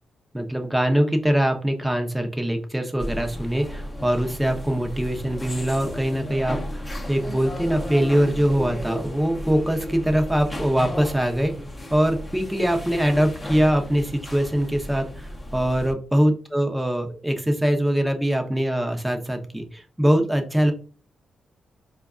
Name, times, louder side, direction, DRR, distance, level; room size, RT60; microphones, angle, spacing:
voice 1, 0.3-11.5 11.9-20.7, equal, 10° right, 4 dB, 0.8 m, -23 dB
sound 1, 3.0-15.9, left 1 dB, 20° left, 0.8 m, -34 dB
4.5 x 2.3 x 2.5 m, 0.38 s
supercardioid pair, 45°, 0 cm